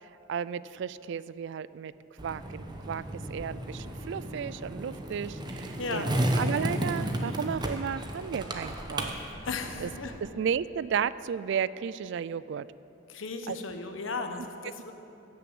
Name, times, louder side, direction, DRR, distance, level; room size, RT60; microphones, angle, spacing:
voice 1, 0.3-1.9 2.2-9.1 9.8-9.9 10.3-12.7 13.5-13.6, right 7 dB, 60° right, 17 dB, 0.3 m, -33 dB
Skateboard, 2.2-10.2, right 1 dB, 20° right, 1.0 m, -33 dB
voice 2, 5.8-6.1 9.5-10.1 13.1-14.9, left 4 dB, 75° left, 6 dB, 1.1 m, -35 dB
15.5 x 6.8 x 7.8 m, 2.9 s
head